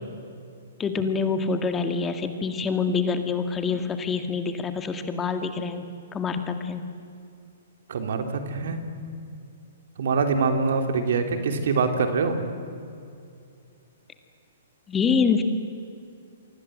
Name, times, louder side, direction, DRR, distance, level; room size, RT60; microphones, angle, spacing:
voice 1, 0.8-5.9 6.1-6.8 14.9-15.4, left 5 dB, 15° left, 7 dB, 2.1 m, -26 dB
voice 2, 7.9-8.8 10.0-12.4, right 4 dB, 65° right, 6 dB, 3.2 m, -24 dB
29.5 x 24.5 x 7.8 m, 2.4 s
figure-of-eight pair, 120°, 0 cm